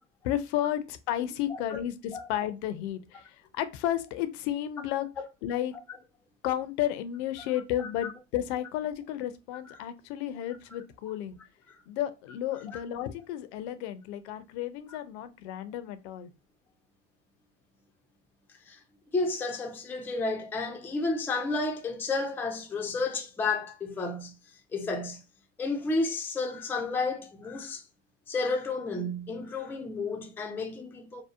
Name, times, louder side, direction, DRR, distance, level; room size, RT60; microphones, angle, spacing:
voice 1, 0.2-5.1 5.4-5.8 6.4-11.4 11.9-16.3, left 12 dB, 65° left, 0.5 m, -32 dB
voice 2, 7.8-8.1 9.7-9.8 12.7-12.8 18.7-18.8 19.1-24.3 24.7-25.2 25.6-27.8 28.3-31.2, left 3 dB, 5° left, 0.3 m, -31 dB
2.7 x 2.0 x 2.3 m
hypercardioid pair, 85°, 37 cm